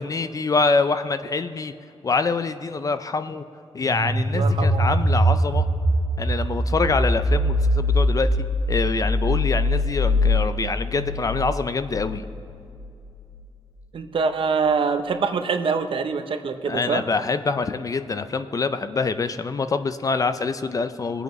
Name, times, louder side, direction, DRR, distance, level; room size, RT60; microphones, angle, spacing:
voice 1, 0.0-1.7 2.0-3.4 3.7-5.7 6.2-12.3 16.7-21.2, left 4 dB, 35° left, 11 dB, 0.4 m, -25 dB
sound 1, 3.8-12.5, equal, ahead, 2.1 m, -22 dB
voice 2, 4.3-4.9 13.9-17.0, right 5 dB, 55° right, 7 dB, 0.7 m, -24 dB
21.5 x 7.9 x 3.1 m, 2.5 s
wide cardioid pair, 145°, 11 cm